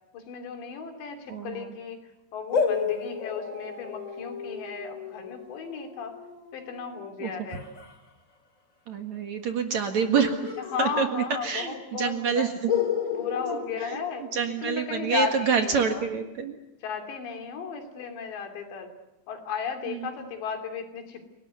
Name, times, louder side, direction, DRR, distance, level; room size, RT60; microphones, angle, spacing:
voice 1, 0.1-2.0 2.3-6.2 6.5-7.7 10.7-12.5 13.1-14.3 14.6-16.0 16.8-18.9 19.3-21.3, left 6 dB, 75° left, 5 dB, 5.2 m, -34 dB
voice 2, 1.3-1.7 7.2-7.3 8.9-10.5 10.8-12.7 13.5-13.6 13.9-14.0 14.3-16.6 19.9-20.1, right 6 dB, 55° right, 5 dB, 2.4 m, -27 dB
sound 1, 2.5-7.9 10.2-11.6 11.9-12.0 12.7-14.8, left 7 dB, 30° left, 1.8 m, -32 dB
29.5 x 19.0 x 9.3 m, 0.97 s
omnidirectional pair, 5.0 m